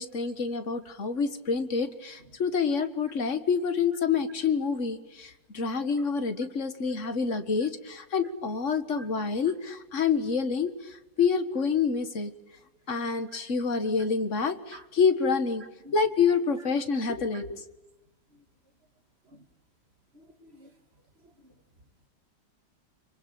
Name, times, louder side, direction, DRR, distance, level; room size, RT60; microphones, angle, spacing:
voice 1, 0.0-12.3 12.9-15.6 15.9-17.6, left 5 dB, 40° left, 2.0 m, -27 dB
voice 2, 7.3-7.7 9.0-9.3 13.3-13.5 14.7-14.8 15.8-16.0 16.3-16.4 17.3-17.4 20.2-20.7, right 2 dB, 35° right, 2.5 m, -50 dB
27.0 x 24.0 x 8.6 m
omnidirectional pair, 2.0 m